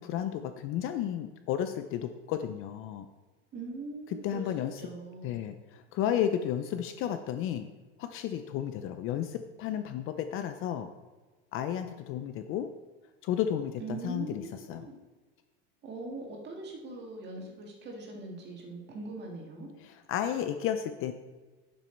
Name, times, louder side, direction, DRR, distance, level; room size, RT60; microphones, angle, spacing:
voice 1, 0.0-3.1 4.1-4.8 5.2-7.7 8.0-10.9 11.5-12.7 13.2-14.9 19.8-21.1, left 10 dB, 40° left, 9 dB, 0.4 m, -33 dB
voice 2, 3.5-5.3 13.8-14.9 15.8-19.7, right 2 dB, 30° right, 0 dB, 2.0 m, -41 dB
11.0 x 6.1 x 4.5 m, 1.3 s
cardioid pair, 155°, 35 cm